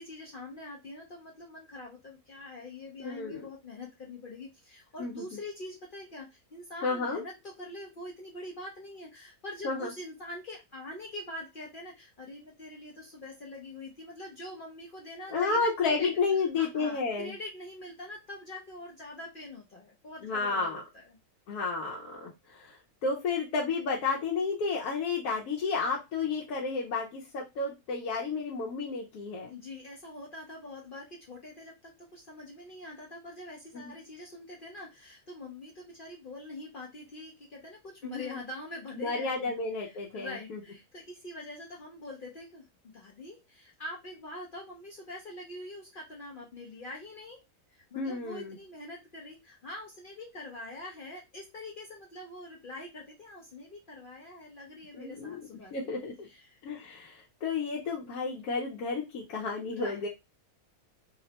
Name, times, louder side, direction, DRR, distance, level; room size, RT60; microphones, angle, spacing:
voice 1, 0.0-16.1 16.6-21.2 29.5-39.5 39.8-42.7 42.9-47.4 47.7-55.7 56.3-56.6 59.7-60.0, left 2 dB, 60° left, -2 dB, 0.5 m, -44 dB
voice 2, 3.0-3.4 5.0-5.2 6.8-7.2 9.6-9.9 15.3-17.4 20.2-20.8 21.5-29.5 33.8-33.9 38.0-38.4 39.0-40.6 47.9-48.6 54.9-55.4 55.7-56.3 56.6-60.1, left 4 dB, 80° left, -3 dB, 1.1 m, -32 dB
2.9 x 2.0 x 2.7 m, 0.24 s
omnidirectional pair, 1.6 m